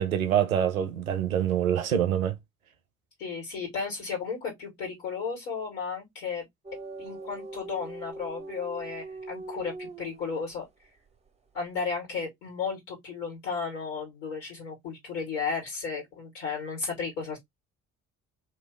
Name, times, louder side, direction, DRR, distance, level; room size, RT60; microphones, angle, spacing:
voice 1, 0.0-2.4, right 9 dB, 85° right, 0.6 m, -25 dB
voice 2, 3.2-6.5 7.0-10.6 11.5-17.4, left 5 dB, 70° left, 2.3 m, -34 dB
sound 1, 6.6-10.7, right 2 dB, 15° right, 0.8 m, -41 dB
3.1 x 2.9 x 3.2 m
figure-of-eight pair, 45°, 41 cm